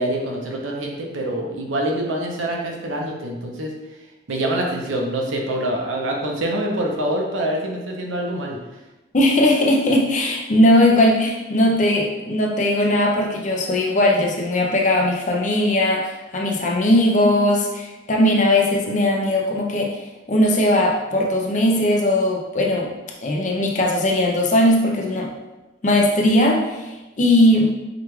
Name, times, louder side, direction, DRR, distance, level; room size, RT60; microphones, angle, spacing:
voice 1, 0.0-3.7 4.3-8.6, right 1 dB, 85° right, 0 dB, 0.7 m, -25 dB
voice 2, 9.1-19.9 20.3-22.9 23.2-25.3 25.8-26.9 27.2-27.7, left 1 dB, 40° left, -1 dB, 0.5 m, -18 dB
4.8 x 2.4 x 3.1 m, 1.1 s
head